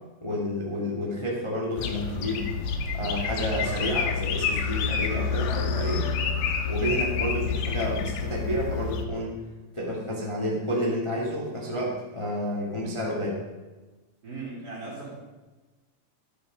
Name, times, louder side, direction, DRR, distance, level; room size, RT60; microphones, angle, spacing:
voice 1, 0.2-2.5 2.9-6.1 6.6-9.4 9.7-13.4, equal, 20° left, -2 dB, 0.7 m, -30 dB
sound 1, 1.8-9.1, left 5 dB, 85° left, 3.1 m, -28 dB
voice 2, 14.2-15.1, right 3 dB, 30° right, -9 dB, 2.5 m, -38 dB
12.5 x 8.7 x 5.2 m, 1.2 s
omnidirectional pair, 4.8 m